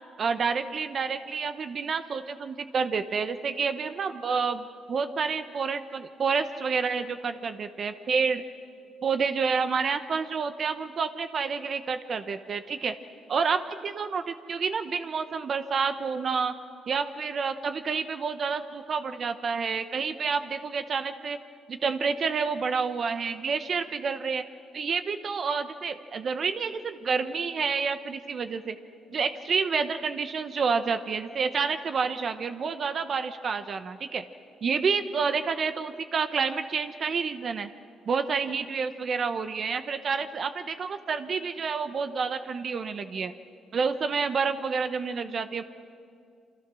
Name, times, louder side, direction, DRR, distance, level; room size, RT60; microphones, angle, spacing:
voice 1, 0.2-8.4 9.0-12.9 13.3-16.5 16.9-21.4 21.7-24.4 24.7-28.7 29.1-34.2 34.6-37.7 38.1-43.3 43.7-45.6, right 5 dB, 50° right, 9 dB, 1.0 m, -29 dB
27.5 x 25.5 x 6.2 m, 2.3 s
cardioid pair, 90°, 0 cm